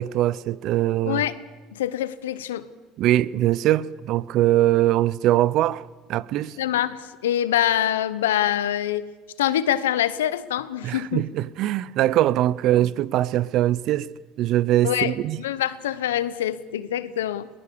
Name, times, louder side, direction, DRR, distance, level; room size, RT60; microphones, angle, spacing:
voice 1, 0.0-1.2 3.0-5.8 6.1-6.6 10.8-14.1 14.4-15.4, right 14 dB, 60° right, 0.7 m, -22 dB
voice 2, 1.1-1.4 1.7-2.7 6.6-9.1 9.4-11.3 14.8-17.5, left 11 dB, 90° left, 0.9 m, -25 dB
22.5 x 20.0 x 7.0 m
hypercardioid pair, 75°, 0 cm